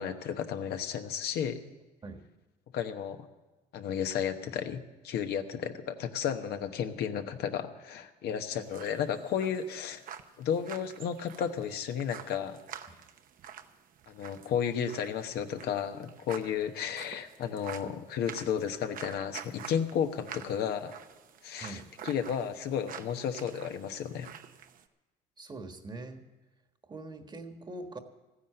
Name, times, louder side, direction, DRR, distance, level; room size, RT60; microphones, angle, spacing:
voice 1, 0.0-1.6 2.7-3.3 3.7-10.0 10.4-12.6 14.1-20.9 21.4-24.3, left 8 dB, 75° left, 6 dB, 1.1 m, -33 dB
voice 2, 8.3-8.6 17.8-17.9 21.6-21.9 25.4-26.2 26.9-28.0, right 2 dB, 25° right, 6 dB, 1.4 m, -43 dB
sound 1, 8.6-24.8, right 8 dB, 55° right, 0.8 m, -48 dB
14.0 x 10.0 x 7.8 m, 1.1 s
cardioid pair, 110°, 17 cm